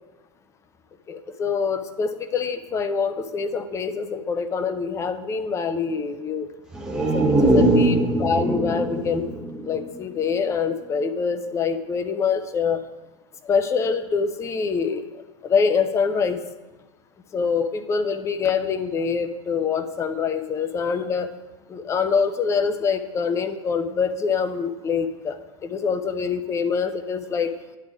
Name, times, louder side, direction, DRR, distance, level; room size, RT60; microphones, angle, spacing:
voice 1, 1.1-6.5 7.1-9.3 9.6-12.8 13.4-15.0 15.4-16.4 17.3-21.3 21.7-25.4 25.6-27.5, left 5 dB, 15° left, 10 dB, 0.4 m, -25 dB
sound 1, 6.7-10.4 10.8-10.9, right 1 dB, 5° right, 0.8 m, -22 dB
10.0 x 3.5 x 5.9 m, 1.2 s
figure-of-eight pair, 90°, 17 cm